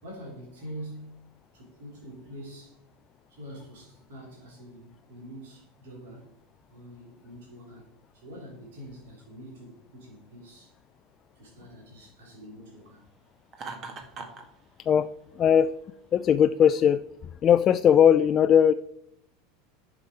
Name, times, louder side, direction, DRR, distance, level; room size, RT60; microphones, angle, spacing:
voice 1, 0.0-2.8 3.3-6.3 6.7-10.7 11.3-13.1, equal, 65° right, -3 dB, 3.3 m, -45 dB
Laughter, 13.5-14.5, right 4 dB, 35° right, 1.7 m, -39 dB
voice 2, 15.4-15.7 16.1-17.0 17.4-18.7, left 8 dB, 35° left, 12 dB, 0.3 m, -19 dB
10.5 x 6.2 x 4.7 m, 0.75 s
figure-of-eight pair, 80°, 0 cm